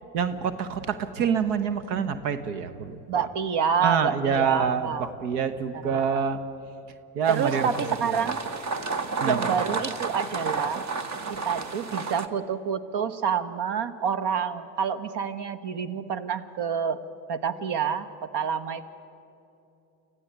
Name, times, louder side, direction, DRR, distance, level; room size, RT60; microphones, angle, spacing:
voice 1, 0.1-3.3 3.8-6.4 7.1-8.2 9.2-9.4, right 7 dB, 85° right, 12 dB, 1.3 m, -27 dB
voice 2, 3.1-5.1 5.7-6.2 7.3-8.4 9.2-10.9 11.3-17.0 17.3-18.1 18.3-18.8, right 7 dB, 60° right, 13 dB, 1.5 m, -28 dB
sound 1, 7.3-12.3, right 4 dB, 35° right, 1.5 m, -31 dB
25.5 x 15.0 x 9.4 m, 2.8 s
supercardioid pair, 75°, 46 cm